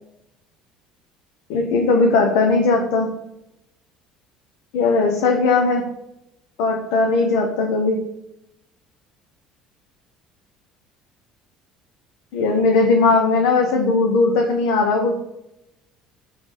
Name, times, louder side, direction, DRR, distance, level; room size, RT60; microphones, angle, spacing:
voice 1, 1.5-3.1 4.7-5.8 6.6-8.0 12.3-15.2, left 3 dB, 75° left, 1 dB, 1.0 m, -18 dB
8.1 x 3.5 x 3.9 m, 0.85 s
cardioid pair, 175°, 0 cm